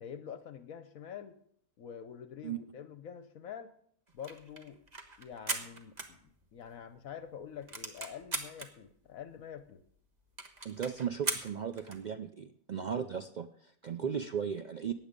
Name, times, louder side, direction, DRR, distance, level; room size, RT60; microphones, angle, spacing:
voice 1, 0.0-1.4 1.8-3.7 4.1-4.8 5.2-6.2 6.5-9.8 14.0-14.1, left 8 dB, 70° left, 11 dB, 1.2 m, -46 dB
sound 1, 4.1-6.7 7.1-7.2 7.4-8.7 9.3-9.4 9.6-9.7 9.9-10.0 10.4-12.1, right 3 dB, 30° right, 1.4 m, -39 dB
voice 2, 10.6-14.9, right 7 dB, 85° right, 9 dB, 0.4 m, -36 dB
15.5 x 10.0 x 5.2 m, 0.66 s
omnidirectional pair, 1.5 m